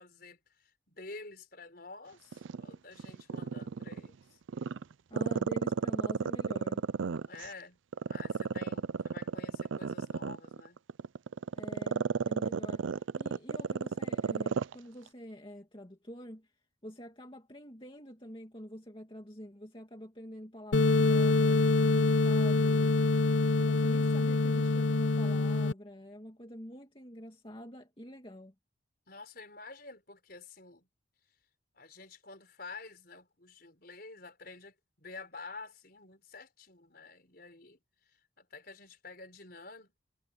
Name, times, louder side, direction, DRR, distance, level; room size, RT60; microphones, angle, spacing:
voice 1, 0.0-4.4 7.3-7.8 8.1-10.8 29.1-30.9 31.7-37.8 38.1-40.0, left 3 dB, 50° left, 5.3 m, -49 dB
Growling, 2.3-4.1 4.5-7.5 7.9-14.7 15.1-15.2, right 5 dB, 75° right, 0.4 m, -32 dB
voice 2, 5.1-6.8 11.5-16.5 16.8-28.5, equal, 25° left, 2.5 m, -47 dB
sound 1, 20.7-25.7, left 3 dB, 70° left, 0.7 m, -25 dB
head